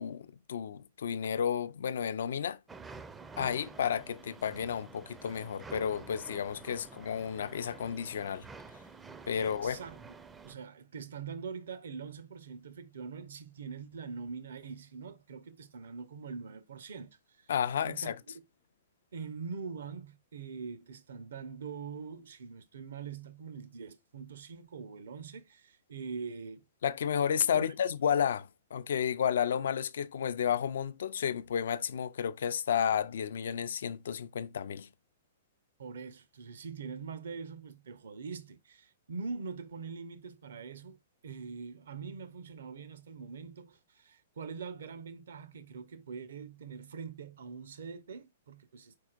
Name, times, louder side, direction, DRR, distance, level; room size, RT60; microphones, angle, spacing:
voice 1, 0.0-2.6 3.4-8.5 9.3-9.8 17.5-18.2 26.8-34.9, left 8 dB, 70° left, 0.4 m, -32 dB
sound 1, 2.7-10.5, right 4 dB, 15° right, 0.4 m, -49 dB
voice 2, 9.4-10.2 10.4-17.1 17.4-17.5 17.8-18.1 19.1-26.6 27.5-27.6 35.8-41.0 41.2-49.0, right 5 dB, 70° right, 0.8 m, -43 dB
4.6 x 4.3 x 2.4 m
hypercardioid pair, 115°, 0 cm